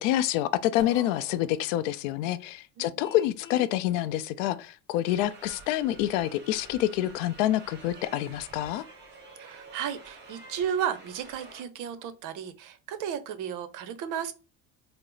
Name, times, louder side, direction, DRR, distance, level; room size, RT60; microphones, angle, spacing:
voice 1, 0.0-8.8, left 13 dB, 80° left, 0.5 m, -27 dB
sound 1, 0.8-2.1, left 2 dB, 10° left, 1.2 m, -47 dB
voice 2, 2.8-3.1 9.4-14.3, right 8 dB, 55° right, 0.8 m, -34 dB
Vehicle horn car horn honking, 3.0-3.8, left 8 dB, 30° left, 0.6 m, -46 dB
sound 2, 5.0-11.6, right 3 dB, 30° right, 1.9 m, -49 dB
4.2 x 2.0 x 3.8 m
supercardioid pair, 115°, 37 cm